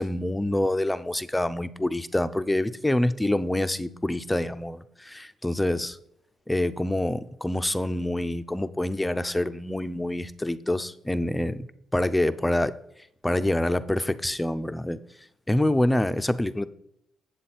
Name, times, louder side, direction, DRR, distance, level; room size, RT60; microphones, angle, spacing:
voice 1, 0.0-6.0 6.5-11.7 11.9-12.8 13.2-15.0 15.5-16.7, left 1 dB, 10° left, 0.6 m, -26 dB
8.0 x 7.5 x 4.2 m
cardioid pair, 90°, 0 cm